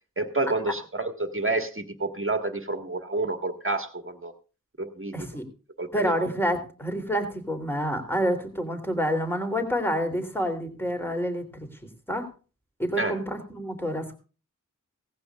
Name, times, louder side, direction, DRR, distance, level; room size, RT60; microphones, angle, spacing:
voice 1, 0.2-4.3 4.8-5.3 5.8-6.1 13.0-13.2, right 2 dB, 40° right, 6 dB, 1.7 m, -29 dB
voice 2, 5.1-5.4 5.9-11.7 12.1-12.3 12.8-14.1, equal, 5° left, 5 dB, 3.1 m, -28 dB
17.5 x 15.0 x 2.4 m, 0.34 s
wide cardioid pair, 60°, 32 cm